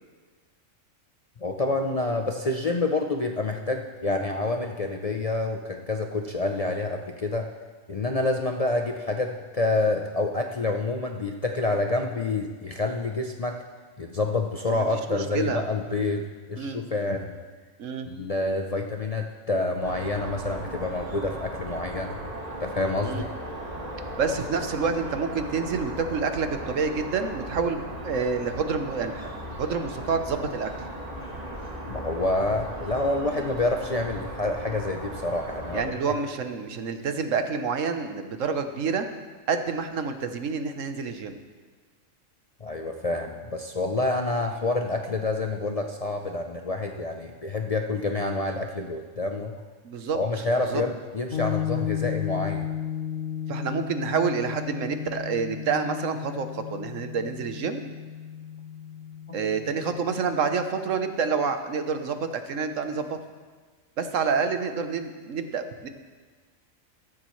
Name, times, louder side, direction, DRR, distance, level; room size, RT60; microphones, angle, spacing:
voice 1, 1.4-7.5 7.9-13.6 14.0-16.2 16.5-17.4 18.1-22.2 22.6-23.3 31.9-35.9 42.6-49.5 50.1-52.7, left 2 dB, 40° left, 3 dB, 0.5 m, -28 dB
voice 2, 14.7-15.6 16.6-16.8 17.8-18.1 23.0-23.3 24.2-30.7 35.7-39.1 39.5-41.4 49.8-50.2 50.6-50.8 53.5-57.8 59.3-63.2 64.0-65.9, right 5 dB, 75° right, 8 dB, 1.3 m, -28 dB
sound 1, 19.8-35.9, right 1 dB, 30° right, 1.7 m, -37 dB
sound 2, 51.3-61.0, left 9 dB, 85° left, 1.5 m, -34 dB
14.5 x 14.0 x 3.1 m, 1.4 s
omnidirectional pair, 1.3 m